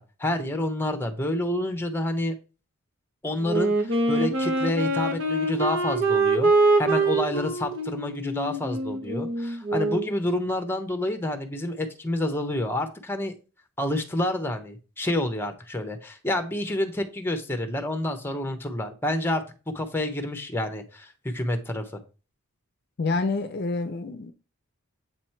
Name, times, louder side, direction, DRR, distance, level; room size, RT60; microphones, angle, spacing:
voice 1, 0.0-2.3 3.2-6.5 6.8-13.3 13.8-19.4 19.7-22.0, left 1 dB, 10° left, 0.8 m, -28 dB
Wind instrument woodwind instrument, 3.4-10.1, right 2 dB, 60° right, 1.2 m, -24 dB
voice 2, 23.0-24.3, left 3 dB, 50° left, 0.5 m, -27 dB
7.9 x 3.0 x 4.4 m
head